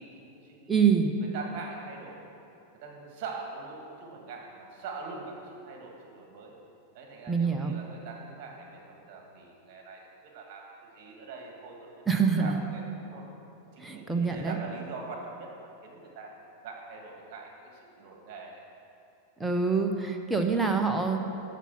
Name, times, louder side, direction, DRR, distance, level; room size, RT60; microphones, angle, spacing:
voice 1, 0.0-0.7 1.2-2.2 2.8-6.5 6.9-10.1 10.3-11.9 12.3-13.3 13.7-16.3 16.6-18.6, right 4 dB, 45° right, 0 dB, 2.1 m, -43 dB
voice 2, 0.7-1.1 7.3-7.7 12.1-12.5 13.8-14.6 19.4-21.2, right 5 dB, 10° right, 3 dB, 1.0 m, -25 dB
13.0 x 5.8 x 6.2 m, 2.7 s
figure-of-eight pair, 90°, 0 cm